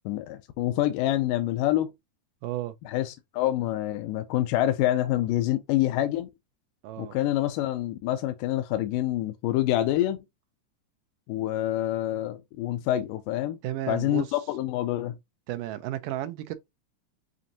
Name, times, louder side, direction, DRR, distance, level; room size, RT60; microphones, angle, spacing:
voice 1, 0.1-1.9 2.9-6.3 7.0-10.2 11.3-13.6 13.9-15.2, left 13 dB, 85° left, 2.1 m, -26 dB
voice 2, 2.4-2.7 6.8-7.2 13.6-14.3 15.5-16.5, right 14 dB, 90° right, 2.2 m, -33 dB
7.4 x 2.6 x 2.7 m
omnidirectional pair, 3.7 m